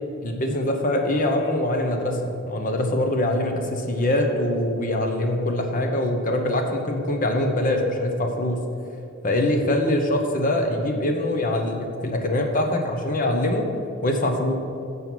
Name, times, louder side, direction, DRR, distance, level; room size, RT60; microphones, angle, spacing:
voice 1, 0.2-8.6 9.2-13.7 14.0-14.5, left 1 dB, 45° left, 3 dB, 0.8 m, -23 dB
7.6 x 5.5 x 6.0 m, 2.7 s
head